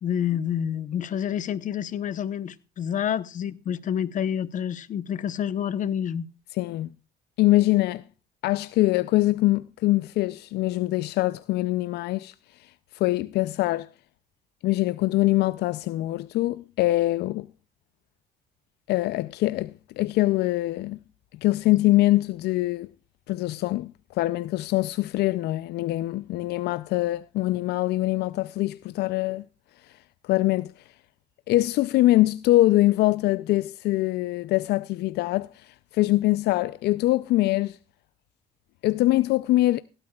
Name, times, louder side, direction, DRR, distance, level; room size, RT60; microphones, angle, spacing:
voice 1, 0.0-6.2, left 9 dB, 50° left, 0.9 m, -28 dB
voice 2, 6.6-6.9 7.4-8.0 8.4-12.3 12.9-13.9 14.6-17.5 18.9-21.0 21.4-22.9 23.3-29.4 30.2-30.7 31.5-37.8 38.8-39.8, left 17 dB, 75° left, 0.5 m, -23 dB
17.0 x 12.0 x 2.3 m
cardioid pair, 110°, 17 cm